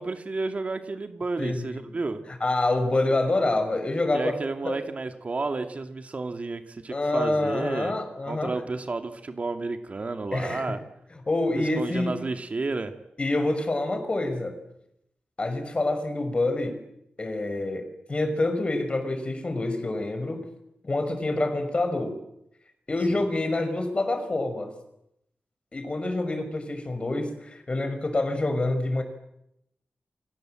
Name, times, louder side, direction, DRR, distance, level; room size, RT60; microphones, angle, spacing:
voice 1, 0.0-2.2 4.1-8.0 8.3-10.8 11.6-12.9 23.1-23.2, right 3 dB, 40° right, 7 dB, 2.4 m, -31 dB
voice 2, 1.4-1.9 2.4-4.4 4.6-4.8 6.9-8.5 10.3-10.7 11.3-12.2 13.2-14.6 15.4-16.8 17.2-20.4 20.8-22.2 22.9-24.7 25.7-29.0, left 2 dB, 30° left, 8 dB, 5.6 m, -27 dB
30.0 x 25.5 x 7.7 m, 0.79 s
wide cardioid pair, 140°, 4 cm